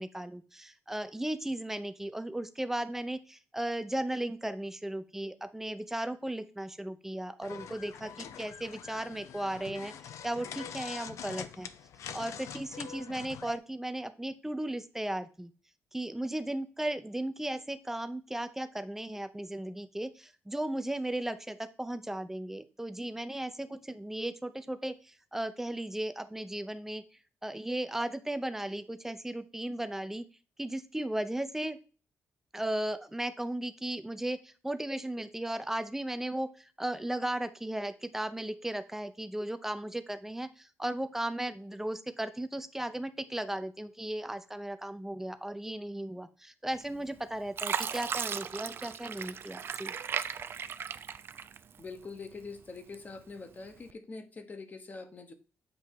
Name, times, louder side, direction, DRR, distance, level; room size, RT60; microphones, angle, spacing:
voice 1, 0.0-11.7 12.1-15.5 15.9-27.0 27.4-30.2 30.6-31.8 32.5-49.9, right 1 dB, 5° right, 11 dB, 0.6 m, -36 dB
sound 1, 7.4-13.6, left 8 dB, 75° left, 0.5 m, -44 dB
Fill (with liquid), 46.8-47.2 47.6-52.0 52.4-53.2 53.7-53.9, right 7 dB, 50° right, 0.4 m, -36 dB
voice 2, 51.8-55.3, left 4 dB, 35° left, 8 dB, 0.9 m, -44 dB
7.7 x 2.8 x 4.5 m, 0.36 s
cardioid pair, 95°, 5 cm